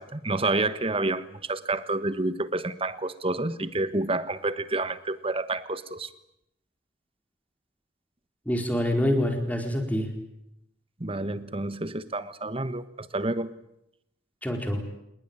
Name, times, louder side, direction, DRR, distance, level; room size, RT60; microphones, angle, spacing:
voice 1, 0.0-6.1 11.0-13.5, right 2 dB, 30° right, 13 dB, 1.3 m, -29 dB
voice 2, 8.5-10.1 14.4-14.8, left 1 dB, 10° left, 3 dB, 4.3 m, -26 dB
27.0 x 20.5 x 8.9 m, 0.81 s
head